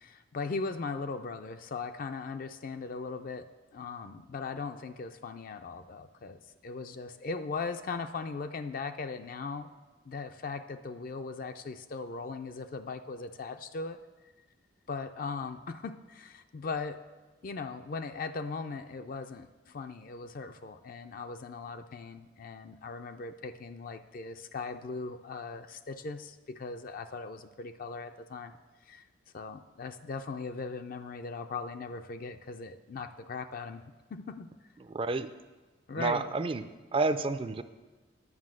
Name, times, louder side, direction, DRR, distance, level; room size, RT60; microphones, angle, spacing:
voice 1, 0.0-3.5 3.7-9.7 10.0-14.0 14.9-17.0 17.4-28.5 28.8-29.0 29.3-33.8 34.1-34.5 35.9-36.4, left 4 dB, 45° left, 8 dB, 0.4 m, -39 dB
voice 2, 34.9-35.3 36.0-36.6 36.9-37.6, right 3 dB, 25° right, 10 dB, 0.3 m, -29 dB
9.6 x 5.6 x 7.5 m, 1.2 s
head